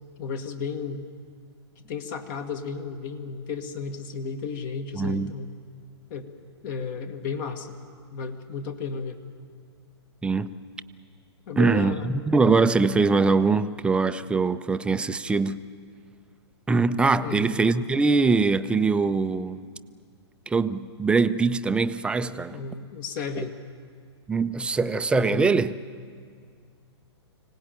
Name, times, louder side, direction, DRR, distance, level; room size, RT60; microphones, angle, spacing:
voice 1, 0.2-1.0 1.8-5.5 6.1-6.3 6.6-7.8 8.1-9.2 11.5-12.1 17.2-17.5 22.5-23.5 25.2-25.5, left 5 dB, 45° left, 7 dB, 1.6 m, -33 dB
voice 2, 4.9-5.3 10.2-10.5 11.6-11.9 12.3-15.6 16.7-19.6 20.5-22.6 23.4-23.5 24.3-25.7, right 4 dB, 5° right, 11 dB, 0.5 m, -22 dB
24.5 x 18.0 x 9.1 m, 2.1 s
hypercardioid pair, 130°, 14 cm